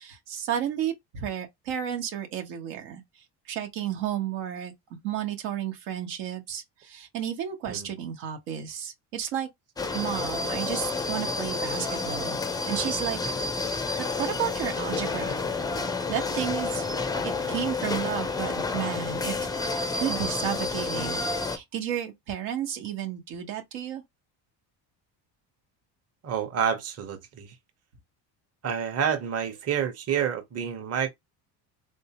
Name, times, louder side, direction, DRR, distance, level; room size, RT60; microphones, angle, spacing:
voice 1, 0.0-9.5 9.9-12.4 12.6-13.2 14.0-15.4 16.1-16.8 17.2-19.5 19.7-24.0, right 10 dB, 90° right, 1.2 m, -32 dB
sound 1, 9.8-21.6, left 3 dB, 10° left, 0.3 m, -30 dB
voice 2, 26.2-27.6 28.6-31.1, right 8 dB, 35° right, 0.8 m, -28 dB
3.4 x 2.7 x 2.9 m
cardioid pair, 110°, 44 cm